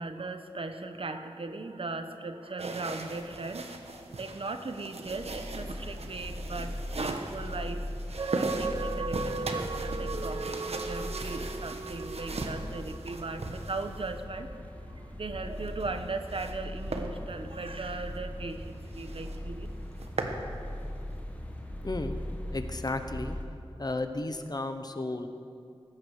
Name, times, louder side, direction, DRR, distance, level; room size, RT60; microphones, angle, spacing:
voice 1, 0.0-7.8 8.3-14.5 14.9-19.7, right 3 dB, 60° right, 8 dB, 1.0 m, -38 dB
sound 1, 2.6-14.2 15.5-16.6 16.9-17.1 17.6-17.7 18.2-18.3 18.5-18.6 18.9-19.4 19.8-20.4, right 2 dB, 80° right, 1.3 m, -38 dB
sound 2, 5.0-23.4, left 1 dB, 15° left, 1.8 m, -40 dB
sound 3, 8.2-13.9 14.4-14.5, right 4 dB, 45° right, 0.4 m, -37 dB
voice 2, 21.8-22.2 22.5-23.4 23.8-25.3, left 2 dB, 40° left, 8 dB, 1.1 m, -33 dB
20.5 x 9.9 x 6.5 m, 2.5 s
wide cardioid pair, 75°, 10 cm